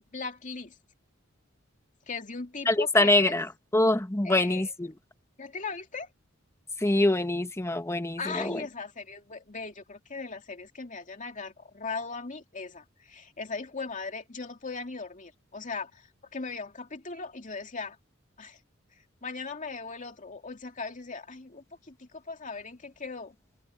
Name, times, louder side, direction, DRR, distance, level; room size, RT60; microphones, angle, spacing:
voice 1, 0.1-0.7 2.1-3.4 4.2-4.7 5.4-6.1 8.2-18.0 18.4-18.6 19.2-23.4, left 4 dB, 40° left, 2.5 m, -38 dB
voice 2, 2.6-4.9 6.8-8.6, left 2 dB, 15° left, 1.1 m, -25 dB
head